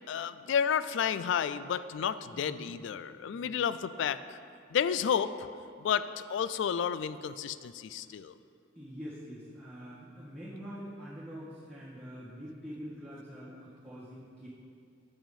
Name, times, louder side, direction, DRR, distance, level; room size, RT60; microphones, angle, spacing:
voice 1, 0.1-4.4 4.7-5.5 5.8-8.3, left 7 dB, 65° left, 14 dB, 0.3 m, -31 dB
voice 2, 2.3-2.7 3.3-3.6 8.7-14.5, equal, 5° left, -13 dB, 1.8 m, -45 dB
8.5 x 5.9 x 5.4 m, 2.4 s
head